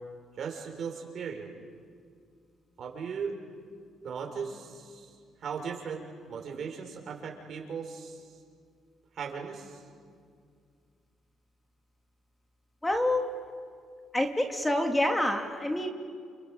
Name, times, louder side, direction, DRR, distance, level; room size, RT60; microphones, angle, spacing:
voice 1, 0.4-1.5 2.8-3.3 4.0-5.2 5.4-6.0 6.3-8.3 9.1-9.8, right 6 dB, 60° right, 2 dB, 5.8 m, -37 dB
voice 2, 12.8-13.3 14.1-15.9, left 1 dB, 15° left, 4 dB, 2.8 m, -27 dB
30.0 x 29.0 x 6.7 m, 2.1 s
cardioid pair, 85°, 0 cm